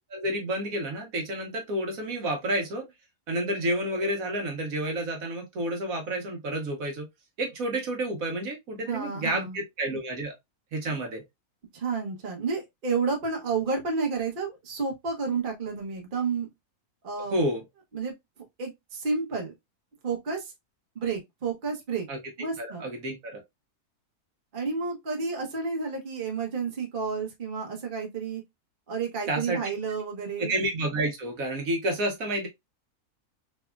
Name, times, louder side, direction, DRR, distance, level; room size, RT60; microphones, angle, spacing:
voice 1, 0.1-2.9 3.3-7.1 7.4-10.3 10.7-11.2 17.3-17.6 22.1-22.2 22.6-23.4 29.3-29.6 30.4-32.5, right 1 dB, 65° right, 1.3 m, -30 dB
voice 2, 8.9-9.6 11.7-16.5 17.0-17.4 17.9-18.1 18.6-19.5 20.0-20.4 20.9-22.1 22.4-22.9 24.5-28.4 28.9-30.5, right 4 dB, 40° right, 1.0 m, -30 dB
3.5 x 3.3 x 2.3 m
omnidirectional pair, 1.6 m